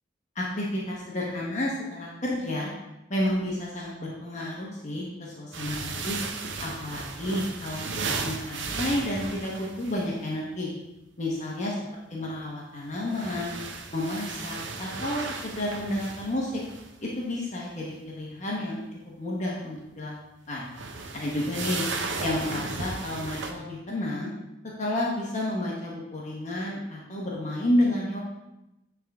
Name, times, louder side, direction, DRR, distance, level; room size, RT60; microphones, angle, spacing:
voice 1, 0.3-2.7 3.1-6.2 6.6-10.7 11.2-11.7 12.1-13.5 13.9-16.6 17.0-18.9 19.2-20.1 20.5-20.7 21.1-21.8 22.2-24.3 24.8-28.2, left 1 dB, 40° left, -3 dB, 1.1 m, -30 dB
sound 1, 5.5-10.1 12.9-16.9 20.6-23.5, right 4 dB, 80° right, 0.8 m, -35 dB
10.0 x 3.6 x 3.5 m, 0.94 s
head